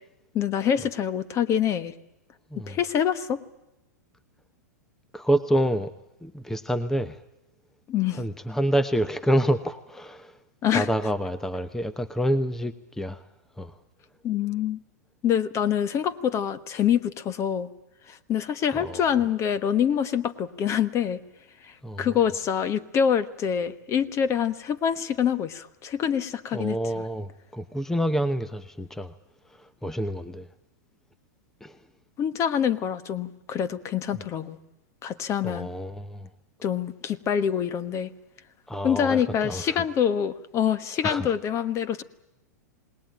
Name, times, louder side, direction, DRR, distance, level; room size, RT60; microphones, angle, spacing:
voice 1, 0.3-1.9 2.7-3.4 7.9-8.2 10.6-10.9 14.2-14.8 15.2-17.7 18.1-21.2 22.0-26.8 32.2-34.6 35.0-35.7 36.6-38.1 38.8-42.0, left 8 dB, 30° left, 15 dB, 1.3 m, -25 dB
voice 2, 5.1-5.9 6.2-7.2 8.2-10.3 10.7-13.2 13.6-13.7 18.7-19.0 21.8-22.2 26.5-29.1 29.8-30.5 31.6-31.7 34.1-34.2 35.4-36.3 38.7-39.8 41.0-41.3, equal, 5° left, 14 dB, 0.8 m, -27 dB
27.5 x 19.5 x 9.1 m, 0.96 s
hypercardioid pair, 105°, 9 cm